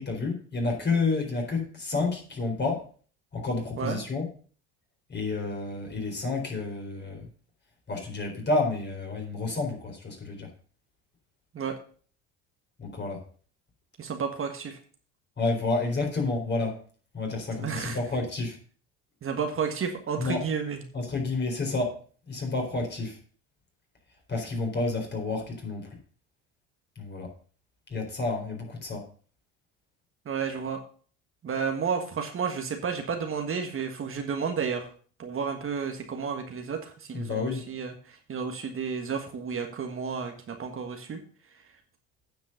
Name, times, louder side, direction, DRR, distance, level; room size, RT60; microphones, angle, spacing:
voice 1, 0.0-2.8 3.3-4.3 5.1-7.3 7.9-10.5 12.8-13.2 15.4-16.8 17.1-18.6 20.2-20.4 20.9-22.0 22.3-23.2 24.3-25.9 27.0-27.3 27.9-29.1 37.1-37.6, left 3 dB, 30° left, 2 dB, 4.1 m, -30 dB
voice 2, 14.0-14.8 17.6-18.0 19.2-20.8 30.2-30.8 31.4-34.9 35.2-41.2, right 6 dB, 35° right, 4 dB, 1.5 m, -32 dB
9.3 x 5.4 x 6.5 m, 0.44 s
hypercardioid pair, 75°, 36 cm